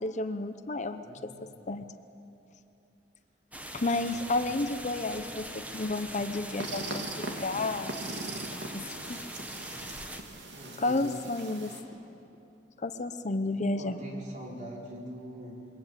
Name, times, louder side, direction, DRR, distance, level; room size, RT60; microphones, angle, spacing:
voice 1, 0.0-1.3 1.7-1.8 3.7-7.9 8.7-9.2 10.8-11.7 12.8-14.0, left 2 dB, 40° left, 9 dB, 0.9 m, -31 dB
voice 2, 1.0-1.5 3.8-4.2 10.5-11.1 13.7-15.7, equal, 45° right, -2 dB, 5.2 m, -43 dB
sound 1, 3.5-10.2, right 1 dB, 10° right, 1.6 m, -42 dB
sound 2, 6.6-11.8, right 2 dB, 70° right, 3.0 m, -40 dB
27.0 x 23.0 x 8.3 m, 2.8 s
head